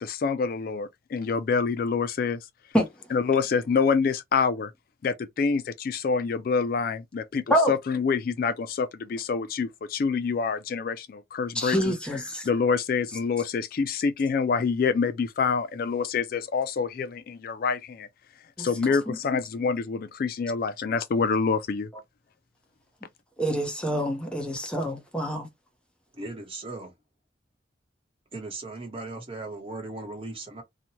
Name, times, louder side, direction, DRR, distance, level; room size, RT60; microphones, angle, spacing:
voice 1, 0.0-2.5 3.1-4.7 5.0-11.9 12.4-18.1 18.6-21.9, left 5 dB, 50° left, 0.3 m, -26 dB
voice 2, 11.5-12.5 18.6-18.7 19.1-19.2 23.4-25.5, equal, 5° left, 0.7 m, -26 dB
voice 3, 26.1-26.9 28.3-30.6, right 2 dB, 30° right, 0.9 m, -37 dB
2.8 x 2.2 x 2.9 m
head